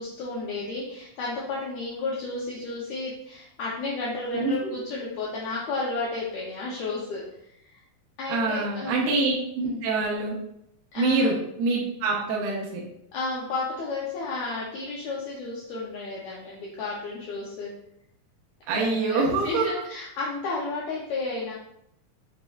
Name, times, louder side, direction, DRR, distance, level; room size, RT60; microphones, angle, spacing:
voice 1, 0.0-7.2 7.6-7.7 8.2-9.1 9.6-9.8 10.9-11.3 13.1-17.7 18.8-21.5, left 3 dB, 80° left, -5 dB, 1.7 m, -32 dB
voice 2, 4.3-4.7 8.3-10.4 11.0-12.8 18.7-19.7, right 3 dB, 80° right, -3 dB, 2.5 m, -25 dB
6.1 x 3.0 x 2.3 m, 0.75 s
omnidirectional pair, 4.1 m